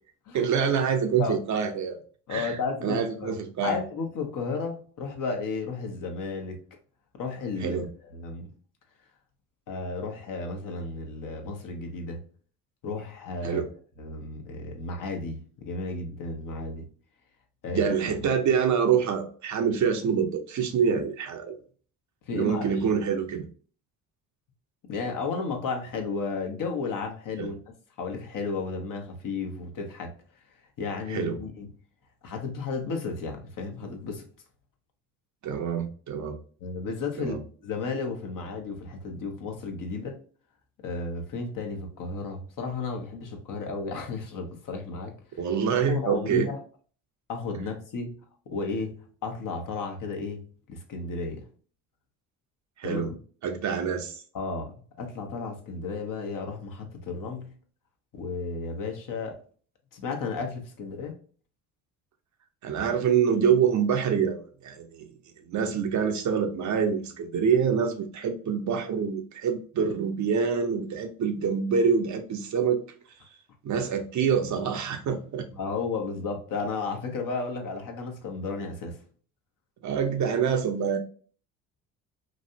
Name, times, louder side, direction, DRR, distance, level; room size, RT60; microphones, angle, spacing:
voice 1, 0.3-2.0 2.3-2.6 2.8-3.8 7.6-7.9 13.4-13.7 17.7-21.5 22.3-23.4 27.4-27.5 31.1-31.4 35.4-36.4 37.2-37.4 45.4-46.5 52.8-53.1 53.4-54.2 62.6-65.1 65.5-72.8 73.6-75.5 79.8-81.0, right 7 dB, 45° right, 0.7 m, -26 dB
voice 2, 2.3-6.6 7.1-8.5 9.7-12.2 12.8-13.6 14.0-16.9 17.6-17.9 18.2-18.3 22.3-22.7 24.9-30.1 30.8-31.7 32.2-34.2 36.6-37.4 37.6-40.2 40.8-45.1 45.9-46.6 47.3-48.1 48.5-48.9 49.2-50.4 50.7-51.4 52.8-53.2 54.3-57.5 58.1-59.4 59.9-61.1 75.5-79.0, left 4 dB, 55° left, 1.0 m, -33 dB
3.0 x 2.6 x 2.7 m
hypercardioid pair, 60°, 39 cm